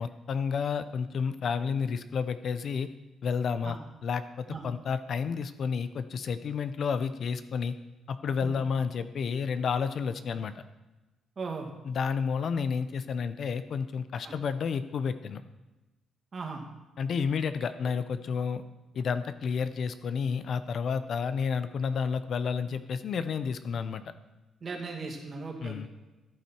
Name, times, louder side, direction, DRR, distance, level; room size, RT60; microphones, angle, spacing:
voice 1, 0.0-2.9 3.2-3.8 4.0-7.7 8.1-10.5 11.8-15.4 17.0-18.6 18.9-24.0 25.6-25.9, left 6 dB, 60° left, 11 dB, 0.7 m, -31 dB
voice 2, 11.4-11.7 14.2-14.3 16.3-16.6 24.6-25.9, right 4 dB, 45° right, 1 dB, 2.2 m, -37 dB
14.0 x 8.4 x 4.5 m, 1.1 s
cardioid pair, 90°, 0 cm